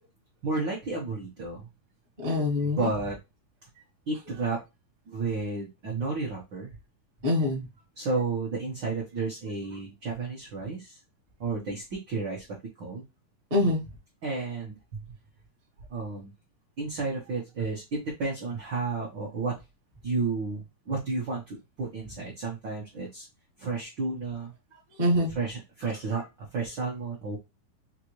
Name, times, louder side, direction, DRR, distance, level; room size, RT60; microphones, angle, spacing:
voice 1, 0.4-1.6 2.6-3.1 4.1-4.6 5.1-6.7 8.0-10.9 11.4-12.4 12.8-13.0 14.2-14.7 15.9-16.3 16.8-19.5 20.0-23.2 23.6-24.5 25.4-27.4, right 3 dB, 85° right, -2 dB, 1.0 m, -32 dB
voice 2, 2.2-2.9 7.2-7.6 13.5-13.8 25.0-25.3 26.1-26.2, left 1 dB, 55° right, -2 dB, 0.5 m, -24 dB
5.1 x 2.6 x 3.0 m, 0.24 s
omnidirectional pair, 3.8 m